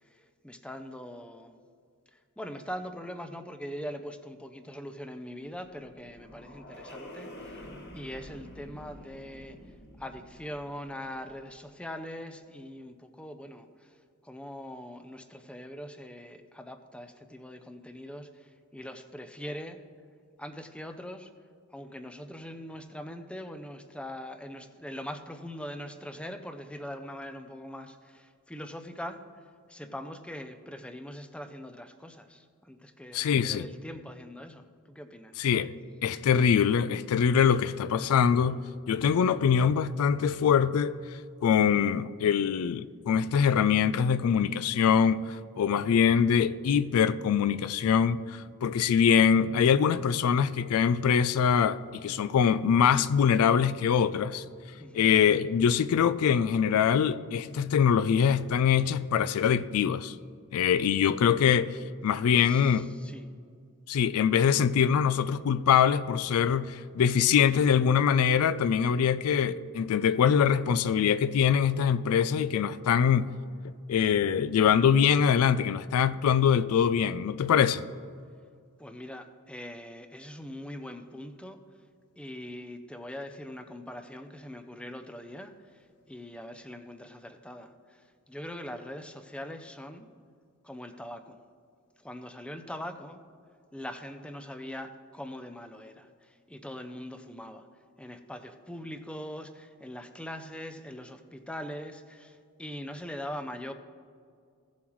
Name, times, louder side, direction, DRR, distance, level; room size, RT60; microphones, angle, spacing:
voice 1, 0.1-1.5 2.1-7.7 7.9-9.6 10.0-14.0 14.2-19.8 20.4-21.3 21.7-29.2 29.7-35.3 54.8-55.1 62.4-63.3 78.8-81.6 82.2-90.1 90.6-91.4 92.0-93.2 93.7-97.7 98.0-103.7, equal, 5° left, 0.4 m, -42 dB
sound 1, 5.5-11.6, equal, 45° left, 1.4 m, -48 dB
voice 2, 33.1-33.7 35.4-35.7 36.0-38.6 38.9-40.9 41.4-54.4 54.9-60.1 60.5-62.9 63.9-73.3 73.9-77.8, left 7 dB, 70° left, 0.3 m, -23 dB
16.0 x 7.2 x 3.1 m
head